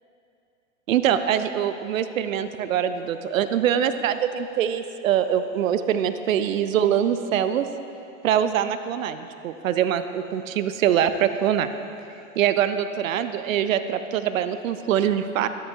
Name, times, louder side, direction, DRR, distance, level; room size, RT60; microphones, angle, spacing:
voice 1, 0.9-7.7 8.2-11.7 12.4-15.5, right 9 dB, 85° right, 11 dB, 0.5 m, -23 dB
12.0 x 10.0 x 2.7 m, 2.7 s
hypercardioid pair, 95°, 40 cm